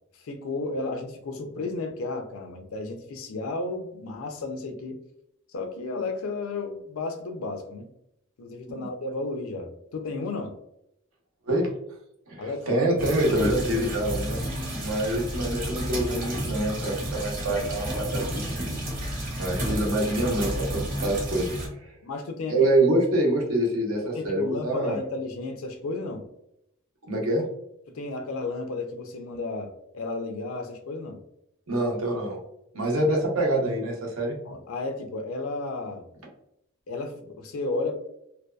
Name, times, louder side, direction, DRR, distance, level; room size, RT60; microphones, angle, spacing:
voice 1, 0.1-5.0 5.5-7.9 8.4-10.5 12.4-12.9 22.0-22.7 24.1-26.2 27.9-31.2 34.5-36.1 36.9-38.0, left 3 dB, 80° left, 6 dB, 0.4 m, -33 dB
voice 2, 12.3-14.4 14.8-18.7 19.4-21.5 21.8-21.9 22.5-25.0 27.1-27.4 31.7-32.4 32.7-34.4, right 1 dB, 80° right, 0 dB, 0.7 m, -26 dB
sound 1, 13.0-21.7, equal, 40° right, 0.9 m, -31 dB
2.6 x 2.2 x 2.2 m, 0.78 s
head